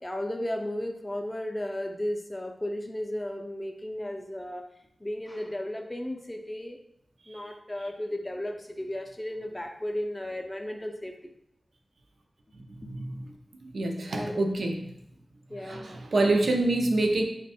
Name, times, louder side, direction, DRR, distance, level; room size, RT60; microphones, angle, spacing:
voice 1, 0.0-4.7 5.0-6.8 7.3-11.3 12.8-13.1 14.1-14.6 15.5-16.0, left 1 dB, 15° left, 4 dB, 0.4 m, -34 dB
voice 2, 12.5-13.3 13.6-14.8 15.5-17.2, right 2 dB, 80° right, 3 dB, 0.5 m, -27 dB
3.4 x 2.2 x 4.1 m, 0.75 s
wide cardioid pair, 110°, 0 cm